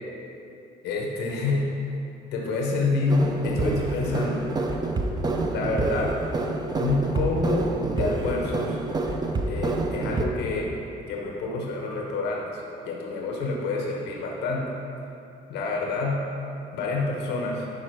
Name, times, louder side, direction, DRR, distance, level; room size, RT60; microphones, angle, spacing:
voice 1, 0.8-1.7 2.3-4.4 5.5-6.2 6.8-8.8 9.5-10.7 11.1-14.7 15.5-16.2 16.7-17.6, left 3 dB, 85° left, -1 dB, 1.2 m, -27 dB
sound 1, 3.1-10.3, right 2 dB, 25° right, 0.7 m, -27 dB
11.0 x 4.4 x 4.7 m, 2.8 s
cardioid pair, 110°, 17 cm